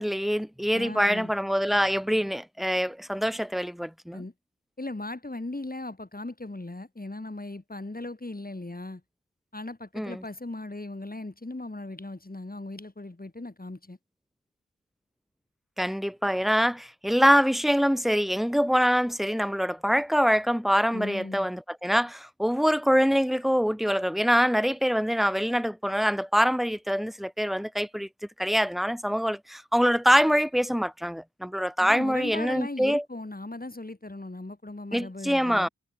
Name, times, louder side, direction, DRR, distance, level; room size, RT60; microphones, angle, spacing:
voice 1, 0.0-4.2 9.9-10.2 15.8-28.1 28.4-33.0 34.9-35.7, equal, ahead, 4.5 m, -24 dB
voice 2, 0.7-1.3 4.1-4.3 4.8-9.0 9.5-14.0 20.9-21.5 31.8-35.7, left 2 dB, 30° left, 7.9 m, -38 dB
wide cardioid pair, 65°, 31 cm